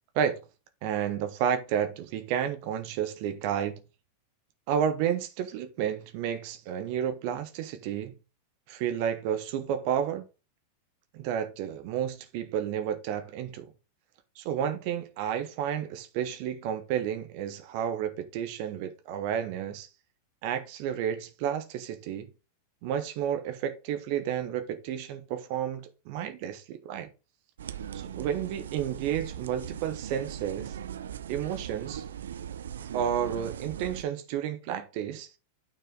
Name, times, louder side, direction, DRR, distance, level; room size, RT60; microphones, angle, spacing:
voice 1, 0.8-3.8 4.7-8.1 8.7-10.2 11.1-13.6 14.4-19.9 20.4-22.3 22.8-27.1 27.9-30.7 31.3-32.0 32.9-35.3, right 9 dB, 45° right, 1.2 m, -31 dB
sound 1, 27.6-34.0, right 9 dB, 65° right, 0.5 m, -39 dB
9.3 x 4.7 x 3.9 m
figure-of-eight pair, 90°, 0 cm